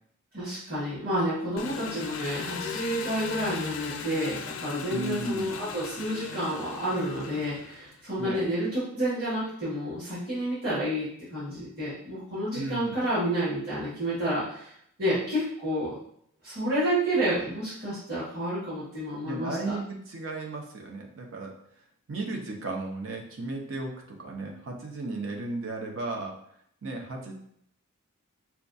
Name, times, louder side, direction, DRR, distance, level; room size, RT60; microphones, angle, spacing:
voice 1, 0.3-14.7 15.0-15.9 16.4-19.7, equal, 45° right, -11 dB, 1.6 m, -30 dB
Engine, 1.6-8.1, left 6 dB, 65° left, 0.4 m, -38 dB
voice 2, 4.9-5.5 8.2-8.4 12.5-13.0 19.2-21.5 22.1-26.3 26.8-27.3, right 2 dB, 65° right, 0 dB, 0.7 m, -34 dB
5.6 x 2.3 x 2.6 m, 0.68 s
head